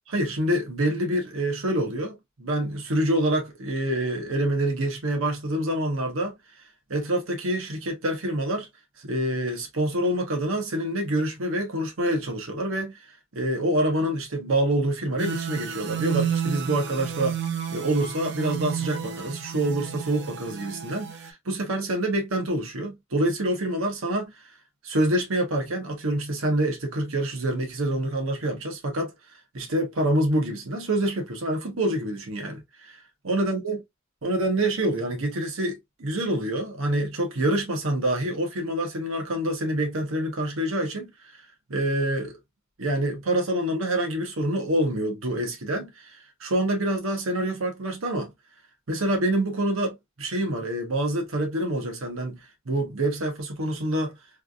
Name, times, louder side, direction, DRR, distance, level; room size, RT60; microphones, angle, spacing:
voice 1, 0.1-6.3 6.9-8.7 9.0-13.0 13.3-17.4 17.7-24.3 24.8-29.1 29.5-33.0 33.2-33.8 34.2-41.3 41.7-42.4 42.8-48.3 48.9-54.1, right 1 dB, 80° right, 1.0 m, -26 dB
sound 1, 15.2-21.3, right 8 dB, 55° right, 0.6 m, -31 dB
3.2 x 2.5 x 2.3 m
head